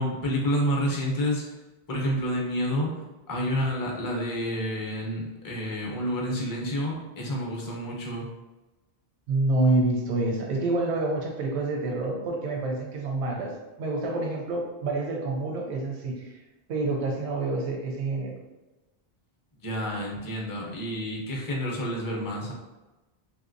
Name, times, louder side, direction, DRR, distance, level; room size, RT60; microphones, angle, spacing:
voice 1, 0.0-1.4 1.9-2.9 3.3-8.3 19.6-22.5, equal, 25° left, -1 dB, 0.5 m, -29 dB
voice 2, 9.3-13.5 13.8-16.3 16.7-18.3, right 2 dB, 85° right, 0 dB, 0.9 m, -27 dB
3.0 x 2.8 x 2.5 m, 1.1 s
omnidirectional pair, 1.1 m